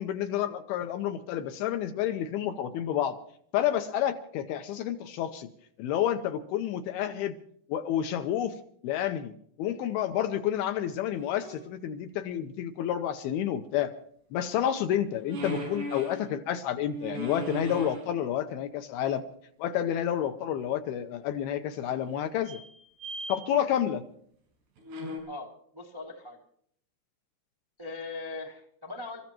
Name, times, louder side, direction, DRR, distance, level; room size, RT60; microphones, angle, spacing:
voice 1, 0.0-3.2 3.5-5.5 5.8-7.4 7.7-8.6 8.8-9.3 9.6-13.9 14.3-19.2 19.6-22.6 23.3-24.0, left 10 dB, 75° left, 8 dB, 2.5 m, -29 dB
sound 1, 11.0-11.7 15.2-16.3 16.8-18.1 21.3-21.4 22.4-23.4 24.8-25.2, right 1 dB, 85° right, 6.3 m, -38 dB
voice 2, 25.3-26.4 27.8-29.2, left 3 dB, 35° right, -1 dB, 0.3 m, -40 dB
29.0 x 14.5 x 3.0 m, 0.63 s
omnidirectional pair, 5.0 m